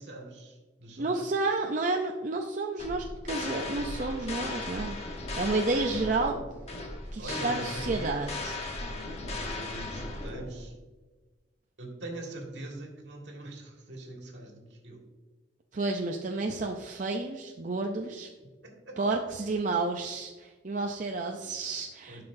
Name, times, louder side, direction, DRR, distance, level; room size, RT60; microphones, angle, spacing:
voice 1, 0.0-1.1 7.2-8.5 8.8-10.7 11.8-15.0 18.4-19.2 21.1-22.2, right 1 dB, 70° right, 1 dB, 1.8 m, -43 dB
voice 2, 1.0-6.4 7.1-8.6 15.7-18.3 19.0-22.2, right 3 dB, 45° right, 3 dB, 0.5 m, -31 dB
sound 1, 2.8-10.7, left 2 dB, 35° left, 1.1 m, -37 dB
11.0 x 5.8 x 2.6 m, 1.3 s
head